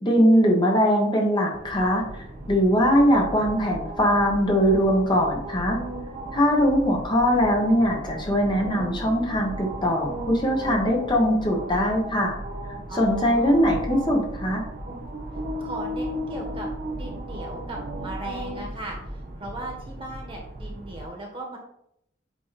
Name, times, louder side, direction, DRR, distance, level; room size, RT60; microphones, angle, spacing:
voice 1, 0.0-5.8 6.3-12.4 12.9-14.6, equal, 25° left, -1 dB, 1.1 m, -21 dB
sound 1, 1.5-21.0, right 1 dB, 50° right, 0.8 m, -35 dB
voice 2, 12.9-13.5 15.6-21.6, right 1 dB, 30° right, 0 dB, 1.4 m, -37 dB
8.2 x 2.8 x 4.1 m, 0.74 s
head